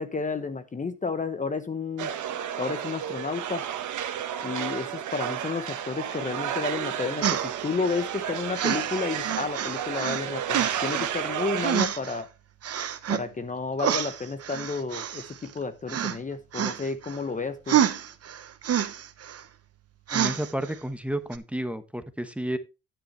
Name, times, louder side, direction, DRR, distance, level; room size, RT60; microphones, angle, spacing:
voice 1, 0.0-2.1 2.6-3.7 4.4-12.3 13.1-17.8, left 4 dB, 25° left, 0.9 m, -31 dB
sound 1, 2.0-11.8, right 9 dB, 75° right, 1.3 m, -32 dB
sound 2, 7.2-8.2 8.5-10.2 10.5-11.1 11.6-12.2 12.6-13.2 13.8-15.6 15.9-16.2 16.5-17.2 17.7-19.4 20.1-20.7 21.3-21.4, right 9 dB, 55° right, 1.1 m, -28 dB
voice 2, 20.1-22.6, right 1 dB, 5° right, 1.1 m, -31 dB
10.0 x 9.0 x 3.3 m
cardioid pair, 90°, 30 cm